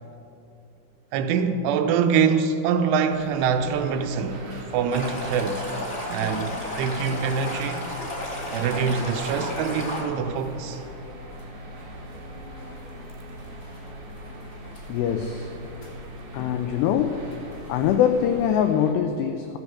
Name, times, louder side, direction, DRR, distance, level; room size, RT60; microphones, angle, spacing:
voice 1, 1.1-4.4 4.7-5.7 6.1-7.9 8.5-10.8, right 6 dB, 85° right, 3.2 m, -24 dB
sound 1, 3.1-18.5, left 3 dB, 50° left, 1.6 m, -45 dB
sound 2, 3.5-18.9, right 2 dB, 60° right, 2.1 m, -42 dB
Stream, 4.9-10.0, left 1 dB, 30° left, 1.5 m, -33 dB
voice 2, 14.9-15.5 16.3-17.2 17.7-19.6, left 9 dB, 90° left, 2.4 m, -23 dB
14.0 x 8.1 x 7.1 m
omnidirectional pair, 5.5 m